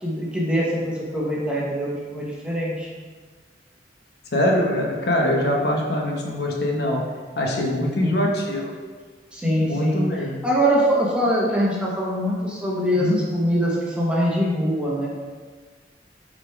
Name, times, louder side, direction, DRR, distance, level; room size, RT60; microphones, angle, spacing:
voice 1, 0.0-2.9 7.8-8.3 9.3-15.1, equal, 5° right, -5 dB, 1.1 m, -23 dB
voice 2, 4.3-7.0 7.4-8.7 9.4-10.4 12.9-13.2, left 1 dB, 60° left, 0 dB, 1.0 m, -23 dB
6.3 x 4.2 x 4.6 m, 1.5 s
head